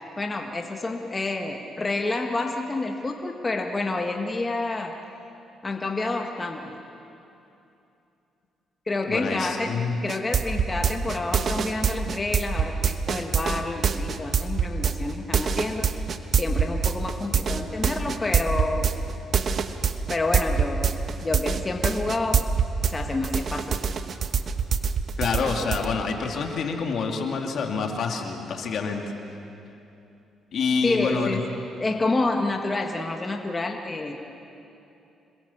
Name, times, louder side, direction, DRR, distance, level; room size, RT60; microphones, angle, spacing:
voice 1, 0.2-5.0 5.6-6.7 8.9-9.7 10.0-15.9 16.3-18.9 20.1-20.9 21.2-22.4 22.8-23.8 30.8-31.5 31.8-34.2, left 2 dB, 25° left, 3 dB, 1.7 m, -28 dB
voice 2, 9.1-10.0 25.2-29.0 30.5-31.3, left 5 dB, 65° left, 3 dB, 2.8 m, -27 dB
sound 1, 10.1-22.9 23.2-25.9, right 7 dB, 55° right, 1.2 m, -24 dB
27.0 x 21.5 x 7.4 m, 2.8 s
cardioid pair, 90°, 0 cm